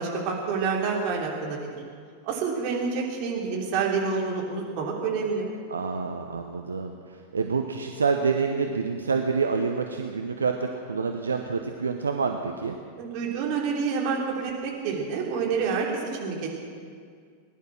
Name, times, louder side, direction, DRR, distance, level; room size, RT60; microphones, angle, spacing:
voice 1, 0.0-1.8 2.2-5.5 13.0-16.5, right 5 dB, 45° right, -1 dB, 3.3 m, -28 dB
voice 2, 5.7-12.8, right 5 dB, 75° right, 4 dB, 0.8 m, -27 dB
20.0 x 11.0 x 6.2 m, 2.1 s
figure-of-eight pair, 90°, 0 cm